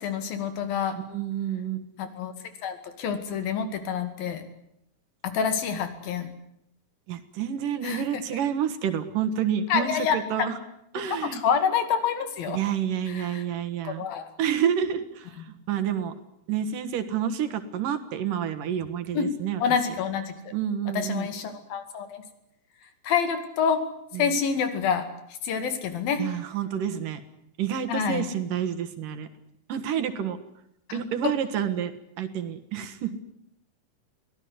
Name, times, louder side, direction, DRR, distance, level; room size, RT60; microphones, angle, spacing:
voice 1, 0.0-1.0 2.0-2.3 2.6-4.4 5.2-6.3 7.8-8.2 9.7-10.6 11.1-12.6 13.0-13.5 13.8-14.3 15.4-15.5 19.1-19.3 19.6-20.3 20.9-22.2 23.0-23.8 24.1-26.4 27.9-28.3 30.9-31.3, left 7 dB, 80° left, 9 dB, 4.1 m, -27 dB
voice 2, 1.1-1.8 7.1-9.9 10.3-10.5 10.9-11.4 12.5-14.0 14.4-15.0 15.7-16.1 16.5-19.6 20.5-21.3 26.2-27.2 27.6-29.3 29.7-30.4 30.9-31.9 32.2-33.2, right 9 dB, 70° right, 9 dB, 3.1 m, -28 dB
24.0 x 17.0 x 9.7 m, 0.78 s
omnidirectional pair, 4.1 m